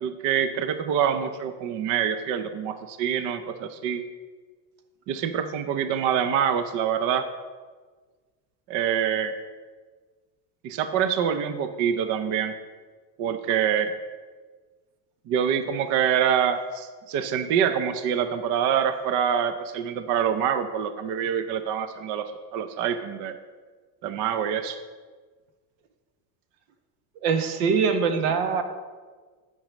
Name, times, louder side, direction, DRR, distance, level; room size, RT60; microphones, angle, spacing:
voice 1, 0.0-4.0 5.1-7.3 8.7-9.3 10.6-12.5 13.2-13.9 15.3-22.2 22.5-23.3 24.0-24.8, right 8 dB, 40° right, 9 dB, 0.5 m, -25 dB
voice 2, 27.2-28.6, right 5 dB, 85° right, 7 dB, 1.4 m, -23 dB
10.5 x 5.4 x 6.2 m, 1.4 s
cardioid pair, 160°, 49 cm